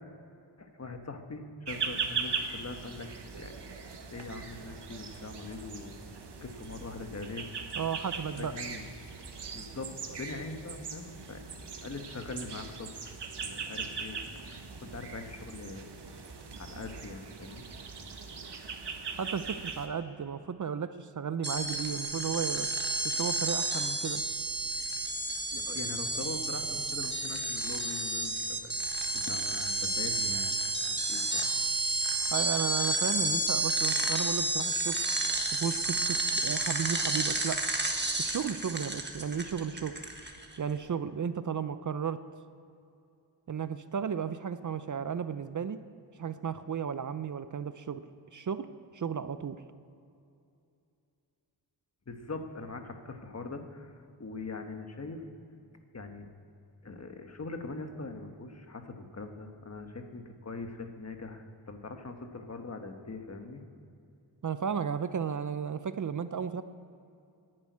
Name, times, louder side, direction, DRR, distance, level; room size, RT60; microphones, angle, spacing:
voice 1, 0.6-3.1 3.4-3.8 4.1-6.0 6.4-7.5 8.4-8.9 9.5-9.9 10.2-12.9 13.4-14.2 14.5-15.9 16.6-17.7 25.5-30.5 30.9-31.5 52.1-55.2 55.9-56.3 56.8-63.6, left 3 dB, 40° left, 5 dB, 1.3 m, -42 dB
sound 1, 1.7-19.9, right 5 dB, 75° right, 1.4 m, -40 dB
voice 2, 7.8-8.5 19.2-22.7 23.2-24.2 32.3-35.0 35.5-37.6 38.2-39.9 40.6-42.2 43.5-45.8 46.2-48.0 48.3-48.7 48.9-49.6 64.4-66.6, right 7 dB, 45° right, 12 dB, 0.6 m, -34 dB
sound 2, 21.4-40.6, right 2 dB, 25° right, 1.4 m, -31 dB
11.0 x 10.5 x 9.5 m, 2.6 s
wide cardioid pair, 125°, 41 cm